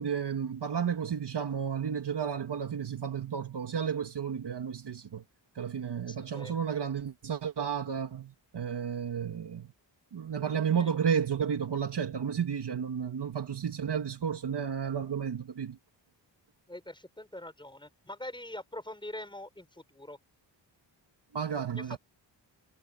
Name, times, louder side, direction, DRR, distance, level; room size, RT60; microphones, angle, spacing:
voice 1, 0.0-5.2 5.6-9.7 10.1-15.8 21.3-22.0, right 7 dB, 60° right, 2.3 m, -32 dB
voice 2, 6.1-6.6 10.8-10.9 16.7-20.2 21.7-22.0, left 1 dB, 10° left, 7.1 m, -43 dB
wide cardioid pair, 115°, 46 cm